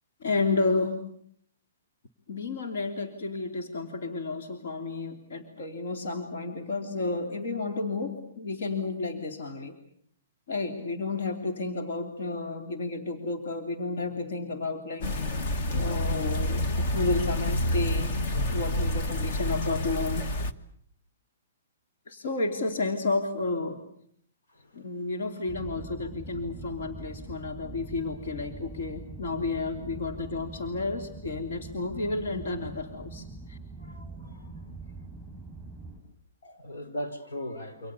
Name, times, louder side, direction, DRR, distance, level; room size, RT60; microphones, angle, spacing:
voice 1, 0.2-1.1 2.3-9.8 10.5-15.1 15.7-18.2 18.5-20.3 22.1-23.8 24.7-33.6, left 3 dB, 55° left, 5 dB, 3.1 m, -31 dB
sound 1, 15.0-20.5, left 1 dB, 35° left, 1.4 m, -28 dB
sound 2, 25.5-36.0, right 3 dB, 5° left, 6.3 m, -43 dB
voice 2, 33.8-34.7 36.4-37.9, equal, 85° left, 8 dB, 5.3 m, -39 dB
29.0 x 25.5 x 7.0 m, 0.65 s
hypercardioid pair, 175°, 0 cm